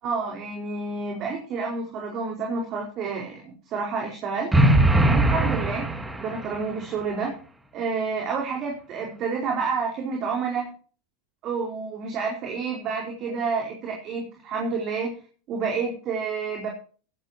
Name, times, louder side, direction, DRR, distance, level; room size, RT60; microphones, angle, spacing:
voice 1, 0.0-4.5 5.0-5.9 6.1-7.3 7.7-10.7 11.4-15.2 15.5-16.7, right 5 dB, 40° right, 0 dB, 4.6 m, -29 dB
sound 1, 4.5-6.6, right 1 dB, 10° right, 2.3 m, -20 dB
16.0 x 15.5 x 2.9 m, 0.40 s
hypercardioid pair, 90°, 0 cm